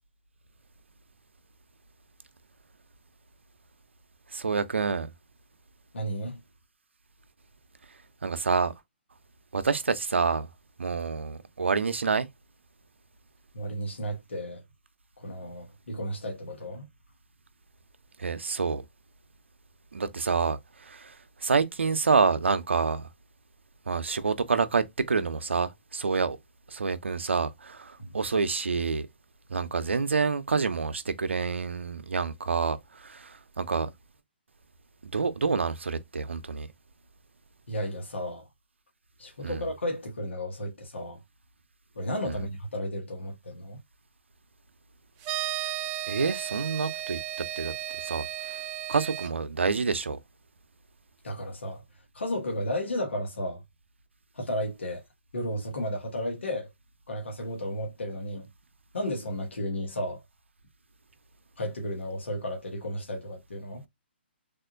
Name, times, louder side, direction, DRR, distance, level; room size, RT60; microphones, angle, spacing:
voice 1, 4.3-5.1 8.2-8.7 9.5-10.5 10.8-12.3 18.2-18.8 19.9-21.1 21.4-23.1 23.9-26.4 26.7-29.1 29.5-33.9 35.1-36.7 39.4-39.6 42.3-42.4 46.1-47.2 47.6-48.6 48.9-50.2, right 4 dB, 85° right, 0.5 m, -28 dB
voice 2, 5.9-6.4 13.5-14.6 15.2-16.9 28.0-28.1 37.7-38.5 39.2-41.2 41.9-43.8 51.2-51.8 52.1-53.6 54.3-55.0 55.3-56.7 57.1-58.5 58.9-60.2 61.6-63.9, equal, 80° left, 1.3 m, -33 dB
sound 1, 45.2-49.3, right 12 dB, 25° right, 0.3 m, -34 dB
3.5 x 2.4 x 2.5 m
hypercardioid pair, 135°, 6 cm